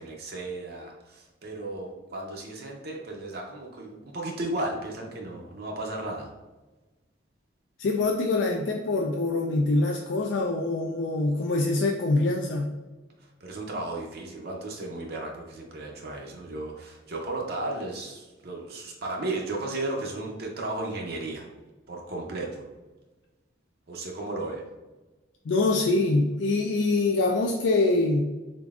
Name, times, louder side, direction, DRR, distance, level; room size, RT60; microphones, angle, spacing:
voice 1, 0.0-6.3 13.2-21.5 21.9-22.6 23.9-24.6, right 2 dB, 55° right, 0 dB, 0.5 m, -34 dB
voice 2, 7.8-12.7 25.5-28.2, left 2 dB, 70° left, 1 dB, 0.3 m, -24 dB
3.8 x 3.4 x 2.4 m, 1.2 s
head